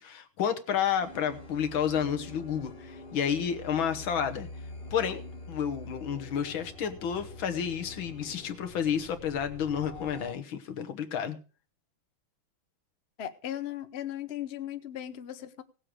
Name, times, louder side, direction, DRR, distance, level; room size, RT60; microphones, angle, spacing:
voice 1, 0.0-4.5 4.9-5.2 5.5-11.4, left 8 dB, 75° left, 7 dB, 2.0 m, -30 dB
sound 1, 1.0-10.3, left 2 dB, 30° left, 1.7 m, -45 dB
voice 2, 13.2-15.6, left 11 dB, 45° left, 9 dB, 0.8 m, -37 dB
17.5 x 7.6 x 4.9 m, 0.37 s
omnidirectional pair, 2.2 m